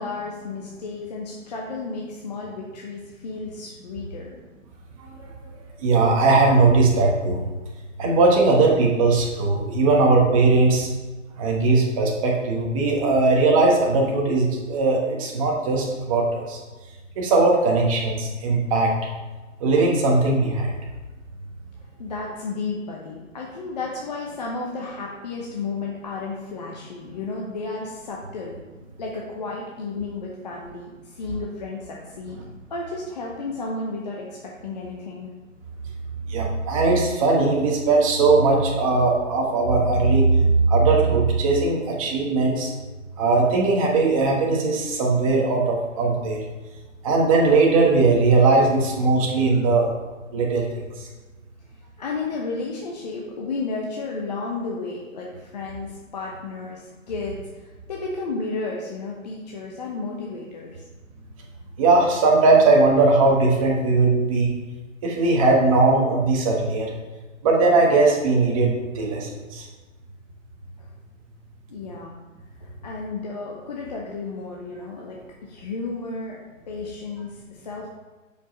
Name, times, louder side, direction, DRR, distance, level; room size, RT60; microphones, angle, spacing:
voice 1, 0.0-4.3 22.0-28.6 29.0-32.4 32.7-35.3 52.0-60.8 71.7-72.2 72.6-76.4 76.7-77.9, left 3 dB, 30° left, -2 dB, 0.8 m, -33 dB
voice 2, 5.8-7.5 8.0-10.9 11.4-16.6 17.2-18.9 19.6-20.8 36.3-42.7 43.2-46.4 47.0-49.9 50.3-50.7 51.0-51.1 61.8-64.5 65.0-66.9 67.4-69.7, right 3 dB, 25° right, -1 dB, 1.3 m, -19 dB
6.9 x 5.3 x 5.3 m, 1.2 s
hypercardioid pair, 160°, 40 cm